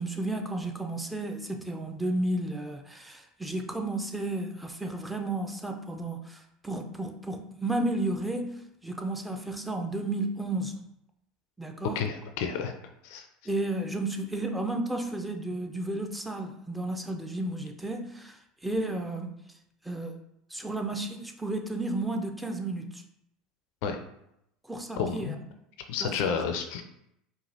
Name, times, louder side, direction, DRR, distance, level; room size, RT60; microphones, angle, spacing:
voice 1, 0.0-10.8 11.6-12.0 13.5-19.3 19.8-20.2 20.5-23.0 24.7-25.4 26.0-26.3, right 2 dB, 5° right, 3 dB, 0.5 m, -33 dB
voice 2, 12.0-12.7 13.0-13.2 23.8-24.0 25.0-25.4 25.9-26.8, left 6 dB, 55° left, 6 dB, 0.4 m, -30 dB
4.8 x 2.4 x 2.6 m, 0.79 s
figure-of-eight pair, 70°, 0 cm